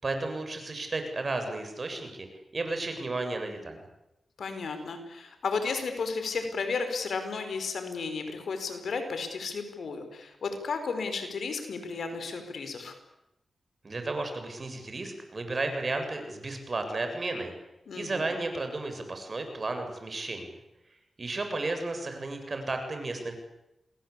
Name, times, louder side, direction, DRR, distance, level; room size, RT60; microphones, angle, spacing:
voice 1, 0.0-2.3 2.5-3.8 13.8-17.5 17.9-20.5 21.2-23.4, right 2 dB, 45° right, 6 dB, 7.4 m, -33 dB
voice 2, 4.4-12.9 17.9-18.3, left 4 dB, 75° left, 7 dB, 5.3 m, -33 dB
27.5 x 21.0 x 8.6 m, 0.90 s
cardioid pair, 55°, 0 cm